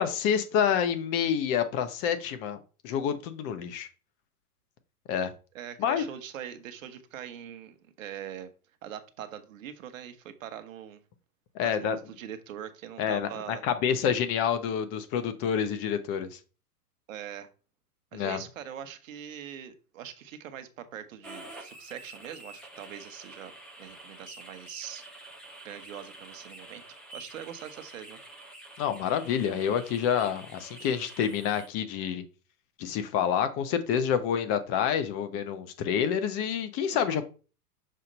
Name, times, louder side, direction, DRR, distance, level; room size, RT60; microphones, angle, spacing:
voice 1, 0.0-2.6 2.8-3.9 5.1-5.3 5.8-6.0 11.5-12.0 13.0-16.4 18.1-18.4 28.8-32.2 32.8-37.3, left 8 dB, 30° left, 0.9 m, -28 dB
voice 2, 5.5-8.5 8.8-11.0 11.6-13.6 17.1-17.5 18.1-23.5 23.8-25.0 25.6-26.8 27.1-28.2 36.9-37.2, right 9 dB, 55° right, 1.1 m, -42 dB
sound 1, 21.2-31.7, right 1 dB, ahead, 0.4 m, -48 dB
6.5 x 2.8 x 5.3 m
hypercardioid pair, 110°, 47 cm